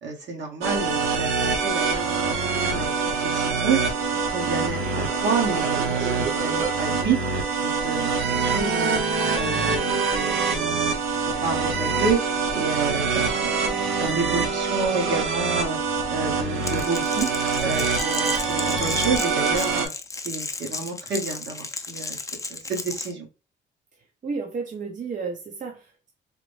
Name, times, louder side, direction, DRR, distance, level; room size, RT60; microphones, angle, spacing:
voice 1, 0.0-3.8 4.3-7.2 7.6-8.0 8.4-9.0 9.3-10.9 11.4-12.2 12.5-15.8 16.1-17.3 17.6-19.9 20.2-22.2 22.5-23.3, right 4 dB, 60° right, 1 dB, 1.3 m, -29 dB
sound 1, 0.6-19.9, right 4 dB, 85° right, 0.8 m, -25 dB
Crackle, 16.6-23.1, left 3 dB, 15° left, 0.5 m, -34 dB
voice 2, 24.2-26.1, right 4 dB, 40° right, 2 dB, 0.7 m, -32 dB
3.9 x 2.0 x 3.2 m, 0.30 s
cardioid pair, 90°, 20 cm